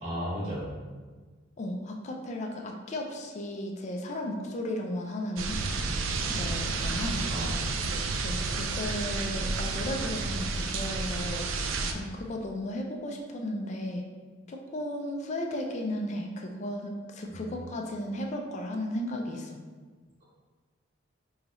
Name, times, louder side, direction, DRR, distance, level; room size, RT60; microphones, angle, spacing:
voice 1, 0.0-0.7 7.3-7.6 11.6-12.0 17.3-17.7, equal, 35° right, -8 dB, 0.9 m, -36 dB
voice 2, 1.6-5.6 6.3-7.2 8.2-14.1 14.5-19.6, left 1 dB, 35° left, 2 dB, 0.4 m, -35 dB
sound 1, 5.4-11.9, right 3 dB, 90° right, 0.3 m, -31 dB
2.9 x 2.3 x 4.0 m, 1.4 s
head